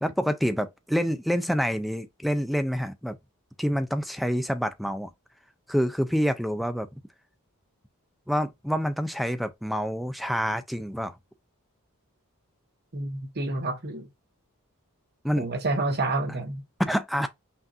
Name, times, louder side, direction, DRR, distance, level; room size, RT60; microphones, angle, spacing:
voice 1, 0.0-3.2 3.6-5.1 5.7-6.9 8.3-11.1 15.2-15.5 16.8-17.3, equal, ahead, 0.4 m, -27 dB
voice 2, 12.9-14.1 15.4-16.6, right 2 dB, 45° right, 1.2 m, -29 dB
5.9 x 2.6 x 2.5 m
head